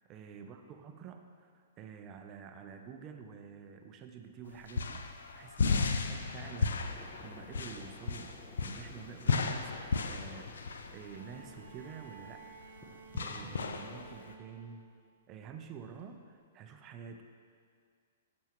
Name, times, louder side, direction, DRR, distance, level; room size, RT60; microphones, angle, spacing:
voice 1, 0.1-12.7 13.2-14.9 15.3-17.2, right 6 dB, 30° right, 6 dB, 0.6 m, -49 dB
sound 1, 4.4-14.3, left 4 dB, 80° left, 0.5 m, -35 dB
sound 2, 6.8-13.8, right 1 dB, ahead, 0.8 m, -56 dB
Bowed string instrument, 11.1-15.1 16.4-16.5, right 6 dB, 60° right, 0.9 m, -55 dB
8.9 x 6.2 x 3.1 m, 2.1 s
hypercardioid pair, 130°, 0 cm